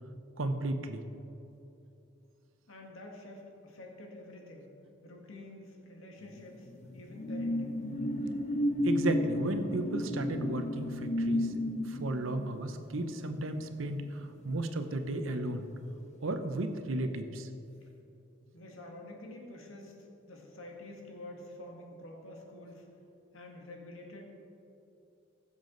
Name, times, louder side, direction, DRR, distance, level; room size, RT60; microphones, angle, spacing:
voice 1, 0.4-1.0 8.8-11.5 11.9-15.7 16.2-17.5, right 2 dB, 80° right, 8 dB, 0.8 m, -34 dB
voice 2, 2.7-4.7 5.0-7.8 18.5-20.0 20.3-22.9 23.3-24.4, left 1 dB, 80° left, 0 dB, 1.8 m, -48 dB
sound 1, 6.3-15.3 15.6-15.9, left 1 dB, 35° left, 0.6 m, -34 dB
15.5 x 7.2 x 3.9 m, 2.9 s
head